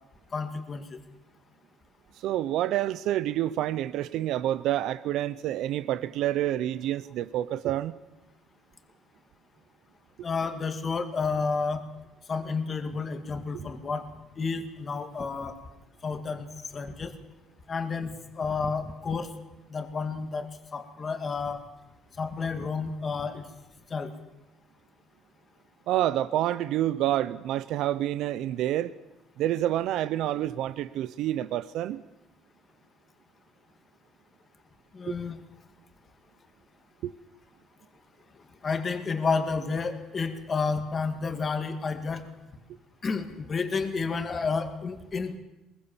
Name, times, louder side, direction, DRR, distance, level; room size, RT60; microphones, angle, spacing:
voice 1, 0.3-1.0 10.2-11.8 12.3-14.0 14.4-15.6 16.0-16.5 16.7-17.1 17.7-19.3 19.7-21.6 22.2-23.4 23.9-24.1 34.9-35.4 38.6-42.2 43.0-45.4, left 4 dB, 25° left, 8 dB, 2.3 m, -30 dB
voice 2, 2.2-7.9 13.5-13.7 25.9-28.9 29.4-32.0 35.1-35.2 37.0-37.1, right 13 dB, 70° right, 16 dB, 0.7 m, -28 dB
22.5 x 21.5 x 7.2 m, 1.0 s
cardioid pair, 150°, 0 cm